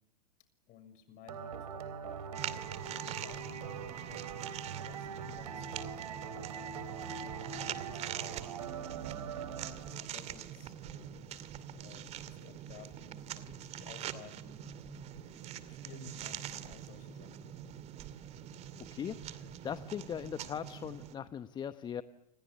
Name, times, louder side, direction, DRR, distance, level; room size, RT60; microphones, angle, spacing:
voice 1, 0.7-11.1 11.7-14.7 15.6-17.6, left 7 dB, 40° left, 11 dB, 6.7 m, -56 dB
sound 1, 1.3-10.2, right 7 dB, 65° right, 3.3 m, -42 dB
sound 2, 2.4-21.2, right 10 dB, 30° right, 2.4 m, -44 dB
voice 2, 18.9-22.0, left 8 dB, 20° left, 12 dB, 1.0 m, -40 dB
30.0 x 27.0 x 7.2 m, 0.85 s
hypercardioid pair, 105°, 21 cm